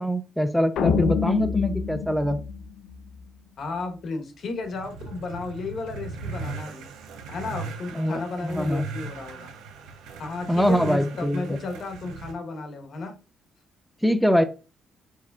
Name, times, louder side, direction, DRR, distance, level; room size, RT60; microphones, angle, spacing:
voice 1, 0.0-2.4 7.9-8.8 10.5-11.6 14.0-14.4, equal, ahead, 8 dB, 0.5 m, -23 dB
sound 1, 0.8-3.2, left 6 dB, 80° left, 0.5 m, -26 dB
voice 2, 3.6-6.9 7.3-9.5 10.2-13.1, left 3 dB, 60° left, 6 dB, 1.0 m, -33 dB
sound 2, 4.5-12.3, right 4 dB, 90° right, 0.7 m, -39 dB
4.6 x 4.2 x 2.3 m, 0.32 s
cardioid pair, 85°, 0 cm